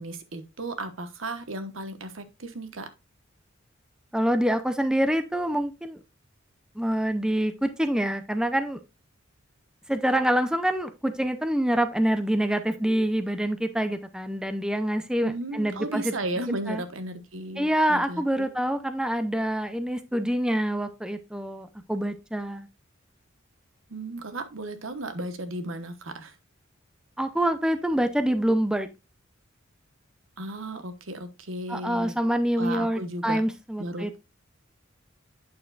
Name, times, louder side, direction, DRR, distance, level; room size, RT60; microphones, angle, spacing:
voice 1, 0.0-2.9 15.2-18.5 23.9-26.3 30.4-32.2 32.6-33.4 33.8-34.2, right 2 dB, 80° right, 1.1 m, -35 dB
voice 2, 4.1-6.0 6.8-8.8 9.9-16.1 16.7-16.8 17.6-22.7 27.2-28.9 31.7-34.2, right 1 dB, 5° right, 0.5 m, -26 dB
8.5 x 6.9 x 2.4 m
head